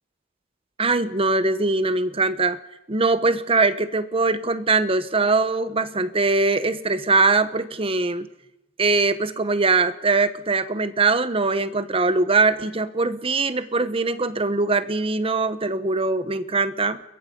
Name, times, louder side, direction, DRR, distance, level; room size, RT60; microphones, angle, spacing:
voice 1, 0.8-2.6 2.9-8.3 8.8-17.0, right 3 dB, 30° right, 13 dB, 1.1 m, -22 dB
29.5 x 22.0 x 5.4 m, 0.93 s
head